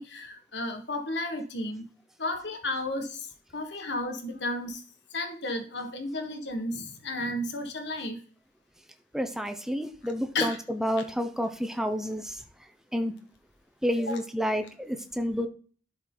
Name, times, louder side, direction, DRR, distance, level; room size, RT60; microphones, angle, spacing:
voice 1, 0.0-1.8 2.2-4.8 5.1-8.2 10.3-10.6 14.0-14.2, left 2 dB, 75° left, 5 dB, 1.6 m, -33 dB
voice 2, 9.1-12.4 12.9-13.1 13.8-15.5, equal, 5° right, 7 dB, 0.8 m, -30 dB
11.5 x 4.7 x 3.9 m, 0.42 s
head